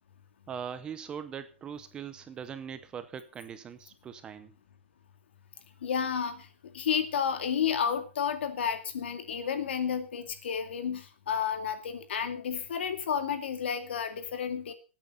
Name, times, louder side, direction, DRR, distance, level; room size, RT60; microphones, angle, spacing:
voice 1, 0.5-4.5, right 7 dB, 15° right, 12 dB, 0.7 m, -41 dB
voice 2, 5.8-14.7, left 7 dB, 65° left, 9 dB, 2.3 m, -31 dB
20.5 x 8.8 x 3.9 m, 0.33 s
hypercardioid pair, 160°, 7 cm